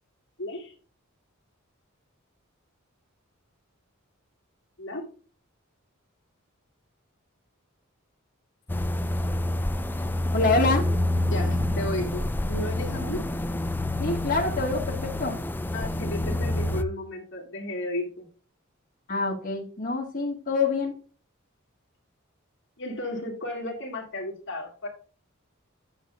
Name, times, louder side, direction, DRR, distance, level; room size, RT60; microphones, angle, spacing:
voice 1, 0.4-0.7 4.8-5.0 11.3-13.2 15.7-18.3 22.8-24.9, left 1 dB, 60° left, 1 dB, 2.0 m, -34 dB
sound 1, 8.7-16.8, left 1 dB, 10° left, 0.4 m, -27 dB
voice 2, 10.3-10.9 14.0-15.4 19.1-20.9, left 3 dB, 40° left, -2 dB, 2.0 m, -26 dB
9.6 x 6.5 x 2.5 m, 0.39 s
head